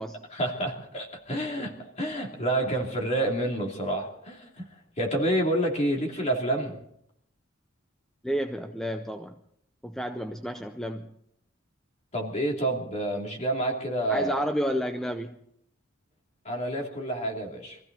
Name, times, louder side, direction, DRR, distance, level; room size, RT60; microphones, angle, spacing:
voice 1, 0.3-4.7 5.0-6.8 12.1-14.5 16.4-17.8, right 1 dB, 30° left, 0 dB, 2.9 m, -28 dB
voice 2, 8.2-9.4 9.8-11.1 14.1-15.4, equal, ahead, 7 dB, 0.5 m, -31 dB
23.0 x 15.0 x 4.1 m, 0.72 s
head